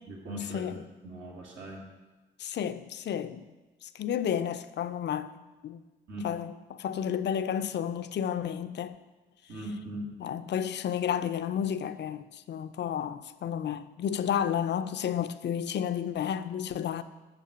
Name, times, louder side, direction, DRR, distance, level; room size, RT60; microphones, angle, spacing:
voice 1, 0.1-0.8 1.0-1.9 6.1-6.3 9.5-10.2, equal, 75° right, -2 dB, 2.1 m, -39 dB
voice 2, 2.4-3.5 3.8-5.8 6.2-8.9 10.2-17.0, left 9 dB, 60° left, 11 dB, 0.5 m, -31 dB
7.5 x 6.4 x 5.0 m, 1.2 s
cardioid pair, 65°, 20 cm